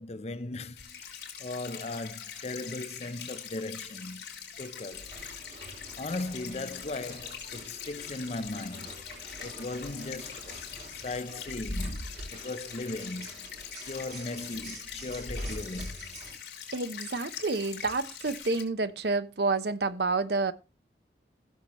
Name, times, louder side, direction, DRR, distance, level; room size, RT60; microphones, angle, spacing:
voice 1, 0.0-4.2 4.6-5.2 6.0-8.9 9.4-13.5 13.8-16.1, left 2 dB, 35° left, 0.6 m, -38 dB
sound 1, 0.8-18.6, left 8 dB, 70° left, 4.3 m, -43 dB
sound 2, 4.9-16.3, equal, 45° right, 6.1 m, -43 dB
voice 2, 16.7-20.5, right 3 dB, 65° right, 0.8 m, -29 dB
16.5 x 7.1 x 3.0 m
head